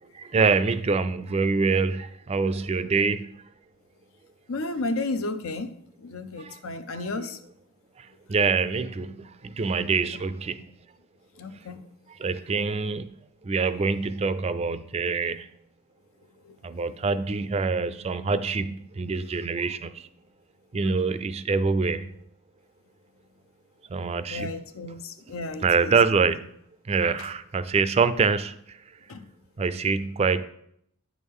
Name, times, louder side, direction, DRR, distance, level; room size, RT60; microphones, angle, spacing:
voice 1, 0.1-3.4 6.4-6.6 7.2-7.3 8.0-10.7 12.1-13.2 13.4-15.5 16.6-20.1 20.7-22.1 23.9-24.5 25.6-26.5 26.8-28.8 29.6-30.4, right 4 dB, 30° right, 13 dB, 0.3 m, -25 dB
voice 2, 4.5-7.4 11.4-11.8 16.4-16.6 20.8-21.0 24.3-25.9 29.1-29.3, left 2 dB, 80° left, 10 dB, 0.7 m, -33 dB
9.3 x 6.2 x 3.6 m, 0.72 s
head